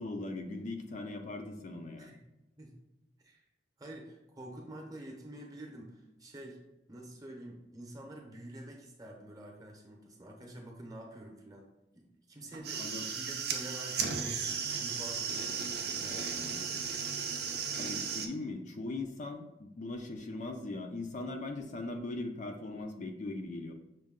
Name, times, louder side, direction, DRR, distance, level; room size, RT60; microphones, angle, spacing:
voice 1, 0.0-2.1 12.8-13.1 17.8-23.7, left 2 dB, 40° left, 4 dB, 0.4 m, -39 dB
voice 2, 3.8-6.6 6.9-11.7 11.9-16.9, right 1 dB, 20° right, 1 dB, 0.8 m, -48 dB
sound 1, 12.5-18.3, right 6 dB, 60° right, 0.5 m, -35 dB
6.2 x 2.2 x 3.6 m, 0.94 s
head